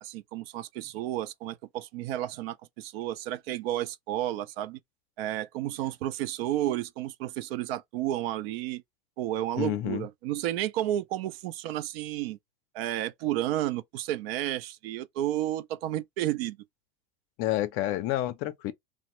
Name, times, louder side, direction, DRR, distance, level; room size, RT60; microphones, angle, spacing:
voice 1, 0.0-4.8 5.2-8.8 9.2-12.4 12.7-16.6, right 13 dB, 65° right, 0.5 m, -32 dB
voice 2, 9.6-10.1 17.4-18.7, left 14 dB, 40° left, 0.5 m, -29 dB
2.8 x 2.1 x 2.9 m
hypercardioid pair, 105°, 33 cm